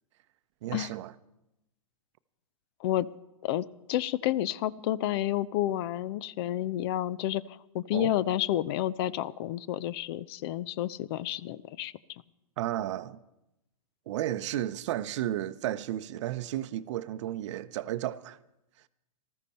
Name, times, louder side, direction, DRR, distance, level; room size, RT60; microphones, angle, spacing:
voice 1, 0.6-1.1 7.9-8.1 12.6-13.2 14.1-18.4, right 13 dB, 55° right, 0.7 m, -33 dB
voice 2, 3.4-12.2, left 13 dB, 45° left, 0.5 m, -30 dB
19.5 x 14.0 x 4.3 m
hypercardioid pair, 120°, 19 cm